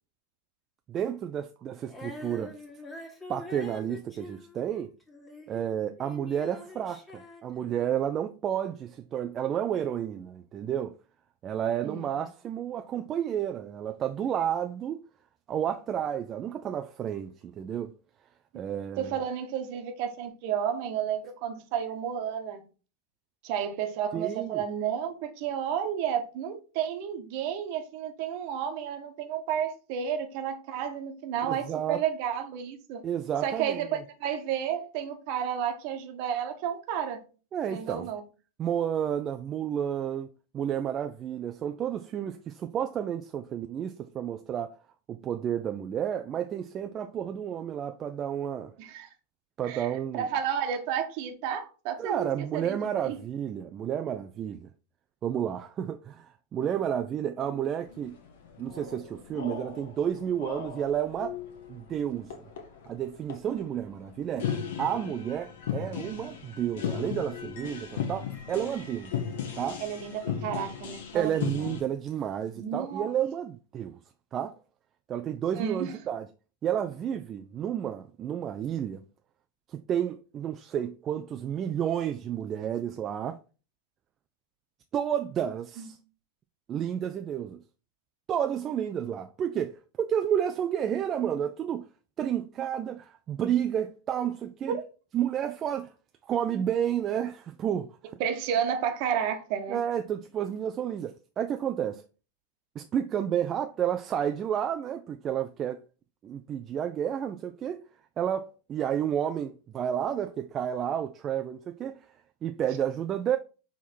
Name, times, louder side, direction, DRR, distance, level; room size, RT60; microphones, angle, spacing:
voice 1, 0.9-2.5 3.3-4.9 5.5-10.9 11.4-15.0 15.5-17.9 18.5-19.2 24.1-24.6 31.4-32.0 33.0-34.0 37.5-38.1 38.6-40.3 40.5-44.8 45.1-48.8 49.6-50.3 52.0-54.7 55.2-58.2 58.6-61.4 61.7-62.4 62.9-64.5 64.8-69.1 69.6-69.8 71.1-74.0 74.3-74.6 75.1-76.3 76.6-79.1 79.7-83.4 84.9-86.0 86.7-87.6 88.3-91.9 92.2-94.8 95.1-95.9 96.2-98.1 99.7-102.0 102.8-105.8 106.2-107.8 108.2-112.0 112.4-113.4, right 9 dB, 30° right, 0.4 m, -31 dB
Female singing, 1.9-8.1, left 2 dB, 15° left, 1.8 m, -45 dB
voice 2, 19.0-22.6 23.4-33.0 33.4-37.2 37.6-38.2 48.8-49.1 49.6-49.9 50.1-52.8 53.0-53.2 69.8-71.7 72.5-73.1 75.5-75.9 85.8-85.9 94.7-94.8 98.2-99.8, right 8 dB, 45° right, 1.1 m, -31 dB
sound 1, 57.8-71.8, left 7 dB, 55° left, 1.1 m, -37 dB
6.1 x 3.5 x 4.4 m
figure-of-eight pair, 90°, 0 cm